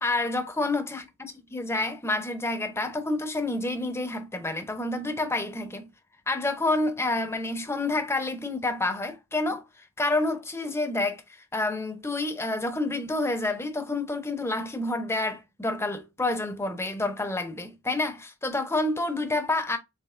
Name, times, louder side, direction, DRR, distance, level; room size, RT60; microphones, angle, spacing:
voice 1, 0.0-5.9 6.3-9.6 10.0-11.2 11.5-19.8, left 2 dB, 10° left, 0.6 m, -28 dB
7.0 x 2.8 x 2.5 m
head